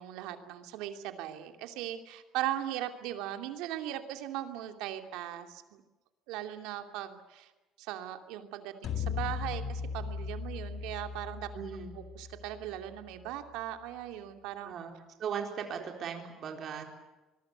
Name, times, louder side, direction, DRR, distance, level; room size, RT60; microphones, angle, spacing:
voice 1, 0.0-5.8 6.3-7.5 7.8-11.5 11.9-14.7, right 12 dB, 85° right, 7 dB, 2.6 m, -38 dB
sound 1, 8.8-13.2, left 6 dB, 45° left, 2.2 m, -38 dB
voice 2, 11.5-11.9 14.6-14.9 15.2-16.8, right 7 dB, 40° right, 4 dB, 4.1 m, -37 dB
25.0 x 22.0 x 8.0 m, 1.1 s
cardioid pair, 160°, 0 cm